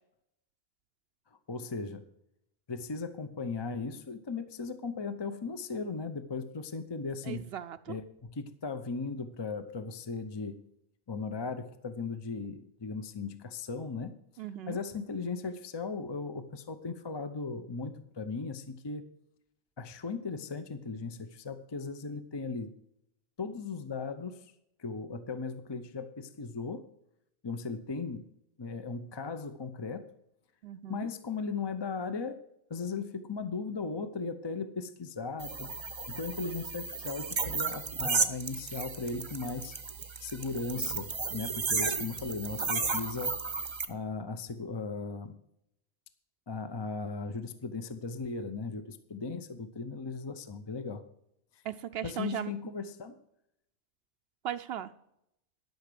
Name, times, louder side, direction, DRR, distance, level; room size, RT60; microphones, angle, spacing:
voice 1, 1.5-2.1 2.7-7.5 7.9-10.6 11.1-14.2 14.7-19.1 19.8-22.7 23.4-24.5 24.8-26.8 27.4-28.3 28.6-30.1 30.9-32.4 32.7-35.7 36.1-39.7 40.2-43.4 43.9-45.4 46.5-51.0 51.5-51.6 52.0-53.2, left 4 dB, 30° left, 10 dB, 0.5 m, -37 dB
voice 2, 7.2-8.0 14.4-14.8 30.6-31.1 51.6-52.5 54.4-54.9, right 10 dB, 70° right, 11 dB, 0.8 m, -37 dB
sound 1, 35.4-43.9, right 4 dB, 30° right, 0.7 m, -34 dB
12.0 x 6.0 x 6.6 m, 0.78 s
omnidirectional pair, 1.1 m